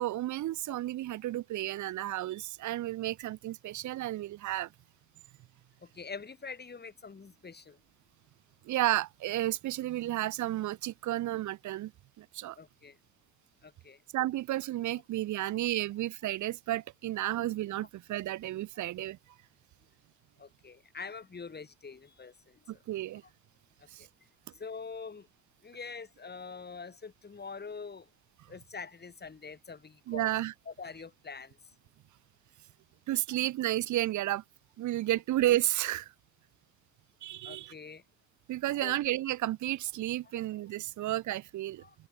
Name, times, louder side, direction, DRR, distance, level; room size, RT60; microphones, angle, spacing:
voice 1, 0.0-4.7 8.6-11.9 12.2-12.6 14.1-19.2 22.7-23.2 23.9-24.1 30.1-30.5 33.1-34.4 34.8-36.1 37.2-37.7 38.5-41.8, right 15 dB, 75° right, 0.8 m, -32 dB
voice 2, 5.8-7.8 12.6-13.0 13.6-14.0 15.4-15.5 17.3-17.4 18.8-18.9 20.4-22.8 23.8-24.1 24.5-25.3 25.6-28.1 28.5-30.3 30.7-31.7 37.4-38.0 38.8-39.0 40.3-40.4 41.8-42.0, left 5 dB, 35° left, 6.2 m, -45 dB
cardioid pair, 90°, 30 cm